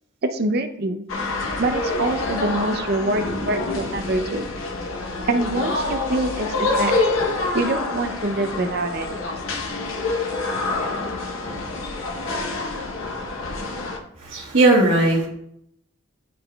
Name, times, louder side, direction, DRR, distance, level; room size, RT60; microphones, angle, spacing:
voice 1, 0.2-1.0 1.6-4.5 5.3-6.9 7.5-9.1, right 2 dB, 50° right, 7 dB, 0.5 m, -25 dB
sound 1, 1.1-14.0, left 2 dB, 75° left, 0.8 m, -26 dB
voice 2, 14.2-15.3, right 2 dB, 70° right, -5 dB, 1.3 m, -17 dB
11.0 x 3.8 x 2.2 m, 0.75 s
head